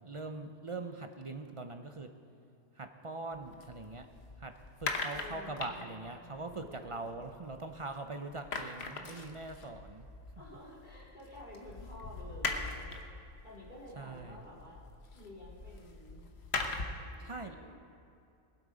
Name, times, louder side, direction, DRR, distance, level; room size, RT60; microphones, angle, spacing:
voice 1, 0.0-2.1 2.8-4.1 4.4-4.5 4.8-10.1 14.0-14.4 17.2-17.6, right 2 dB, 35° right, 6 dB, 0.5 m, -42 dB
sound 1, 3.3-8.0 8.2-17.1, left 3 dB, 55° left, 1.2 m, -41 dB
voice 2, 5.1-7.2 10.4-14.8 15.1-16.3 16.6-17.8, left 1 dB, 35° left, -6 dB, 3.5 m, -52 dB
21.5 x 8.0 x 5.1 m, 2.6 s
omnidirectional pair, 1.3 m